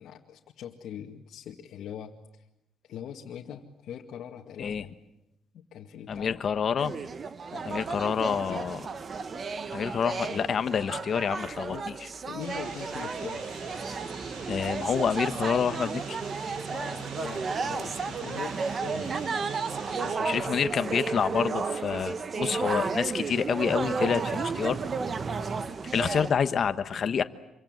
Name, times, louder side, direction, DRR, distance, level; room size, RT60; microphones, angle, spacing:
voice 1, 0.0-2.2 2.8-4.9 5.5-6.4 7.5-8.6 11.7-11.9 12.2-13.5 16.7-19.4 19.9-20.6, left 9 dB, 60° left, -1 dB, 2.0 m, -42 dB
voice 2, 6.1-6.9 7.7-8.8 9.7-11.9 14.5-16.2 20.2-24.8 25.9-27.2, left 7 dB, 40° left, 11 dB, 1.2 m, -28 dB
sound 1, 6.8-26.3, right 5 dB, 30° right, 1.1 m, -33 dB
laptop fan, 12.4-20.2, right 3 dB, 75° right, 7.5 m, -45 dB
26.5 x 24.0 x 8.0 m, 0.86 s
cardioid pair, 150°, 0 cm